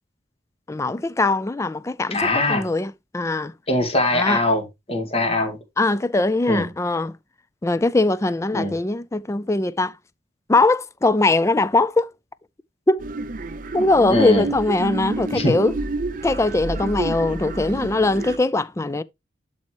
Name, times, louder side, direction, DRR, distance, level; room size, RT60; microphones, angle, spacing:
voice 1, 0.7-3.5 4.1-4.4 5.8-7.1 7.6-9.9 10.5-12.1 12.9-13.0 13.7-15.7 16.2-19.0, left 2 dB, 15° left, 0.4 m, -21 dB
voice 2, 2.1-2.6 3.7-5.6 6.5-6.7 8.5-8.7 14.1-14.5 15.3-15.5, left 1 dB, 30° left, 2.0 m, -22 dB
sound 1, 13.0-18.4, right 2 dB, 45° right, 0.7 m, -29 dB
11.5 x 4.2 x 3.0 m
head